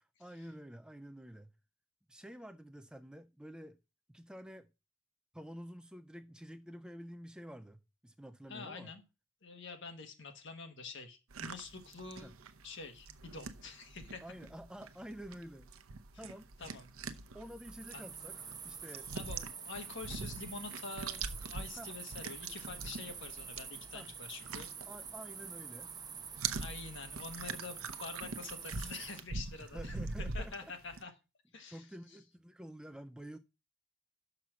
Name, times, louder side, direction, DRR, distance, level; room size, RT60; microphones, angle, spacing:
voice 1, 0.2-1.5 2.1-3.8 4.1-4.7 5.3-8.9 12.2-12.3 14.2-15.7 16.2-16.5 17.3-18.4 18.6-19.1 21.7-21.9 23.9-24.1 24.9-26.0 29.6-31.0 31.7-33.4, equal, 5° right, 0.4 m, -49 dB
voice 2, 8.5-9.0 9.4-12.3 12.6-14.2 16.6-16.9 17.9-18.0 19.1-24.7 26.6-30.0 30.3-31.1 31.5-32.2, left 4 dB, 60° left, 1.5 m, -47 dB
sound 1, 11.3-25.6 25.8-31.0, right 4 dB, 85° right, 0.7 m, -44 dB
sound 2, 17.4-29.2, right 6 dB, 20° right, 0.8 m, -47 dB
6.0 x 5.8 x 6.1 m
head